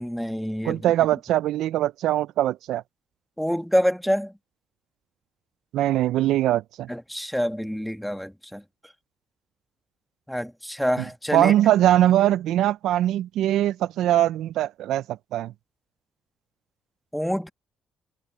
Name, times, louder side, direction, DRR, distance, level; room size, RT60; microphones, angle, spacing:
voice 1, 0.0-0.8 3.4-4.3 6.9-8.6 10.3-11.5 17.1-17.5, equal, ahead, 1.3 m, -26 dB
voice 2, 0.6-2.8 5.7-6.9 11.3-15.0 15.3-15.5, right 13 dB, 75° right, 0.4 m, -21 dB
cardioid pair, 115°, 0 cm